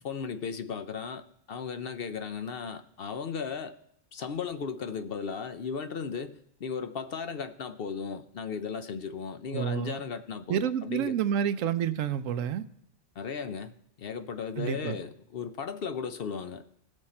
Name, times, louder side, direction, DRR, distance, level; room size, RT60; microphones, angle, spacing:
voice 1, 0.0-3.8 4.1-11.1 13.2-13.7 14.0-16.6, left 6 dB, 55° left, 0.8 m, -36 dB
voice 2, 9.5-10.0 10.5-12.6 14.6-15.0, right 9 dB, 85° right, 1.0 m, -29 dB
18.5 x 6.4 x 4.3 m
omnidirectional pair, 1.3 m